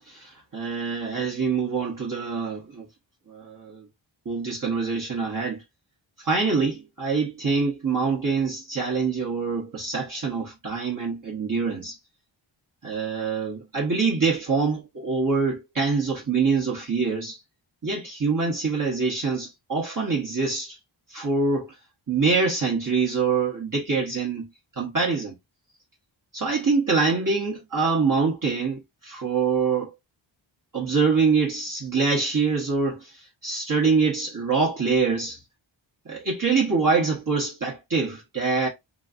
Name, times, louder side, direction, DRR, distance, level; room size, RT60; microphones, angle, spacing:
voice 1, 0.0-2.9 3.3-3.8 4.2-5.6 6.2-12.0 12.8-17.4 17.8-20.8 21.1-21.7 22.1-24.5 24.8-25.4 26.3-29.9 30.7-35.4 36.1-38.7, right 4 dB, 40° right, 1.1 m, -25 dB
3.1 x 2.4 x 2.4 m
cardioid pair, 55°, 49 cm